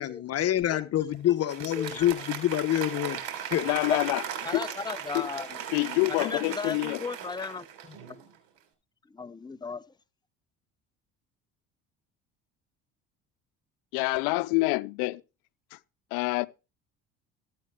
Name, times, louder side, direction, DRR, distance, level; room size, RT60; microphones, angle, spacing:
voice 1, 0.0-3.2 3.5-3.7, left 12 dB, 50° left, 1.0 m, -27 dB
Applause, 1.3-8.3, right 9 dB, 80° right, 3.6 m, -38 dB
voice 2, 1.8-2.1 3.0-3.2 3.9-4.0 4.4-5.6 6.1-8.0 9.1-9.8, left 5 dB, 15° left, 0.8 m, -35 dB
voice 3, 3.6-4.2 4.5-4.6 5.1-5.3 5.7-7.0 13.9-15.2 15.7-15.8 16.1-16.5, left 23 dB, 80° left, 0.7 m, -27 dB
14.5 x 8.7 x 2.2 m
supercardioid pair, 85°, 31 cm